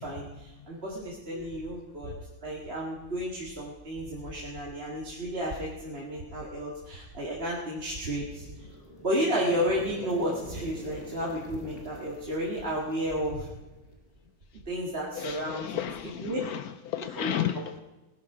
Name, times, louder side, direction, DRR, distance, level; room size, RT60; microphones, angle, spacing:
voice 1, 0.0-2.1 2.4-8.5 9.0-13.5 14.7-15.8 16.2-16.4 17.2-17.3, equal, 30° right, 2.1 m, -32 dB
sound 1, 8.2-14.1, left 2 dB, 30° left, 1.9 m, -47 dB
voice 2, 15.1-17.8, left 10 dB, 80° left, 0.8 m, -33 dB
19.0 x 11.5 x 5.0 m
omnidirectional pair, 2.2 m